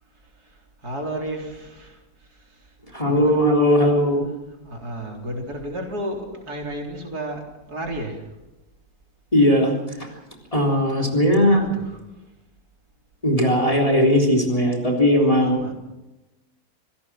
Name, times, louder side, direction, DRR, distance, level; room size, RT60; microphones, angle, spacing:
voice 1, 0.2-2.8 3.0-3.8 4.5-8.3 11.4-12.3 15.2-15.7, right 1 dB, 65° right, 1 dB, 4.4 m, -33 dB
voice 2, 2.9-4.3 9.3-10.1 10.5-11.6 13.2-15.7, equal, 20° left, 2 dB, 3.8 m, -18 dB
26.5 x 17.0 x 6.2 m, 1.0 s
omnidirectional pair, 1.8 m